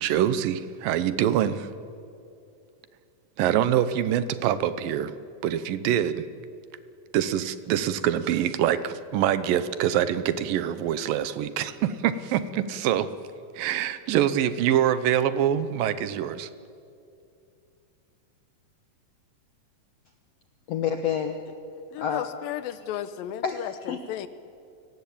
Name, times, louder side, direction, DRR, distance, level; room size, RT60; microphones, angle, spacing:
voice 1, 0.0-1.7 3.4-5.1 5.4-6.3 7.1-13.1 13.5-16.5, right 10 dB, 80° right, 14 dB, 2.6 m, -25 dB
voice 2, 20.7-21.4 22.0-22.3 23.4-24.0, left 8 dB, 65° left, 6 dB, 1.7 m, -28 dB
voice 3, 21.9-24.3, left 11 dB, 80° left, 14 dB, 2.6 m, -34 dB
29.5 x 17.5 x 8.6 m, 2.5 s
omnidirectional pair, 4.1 m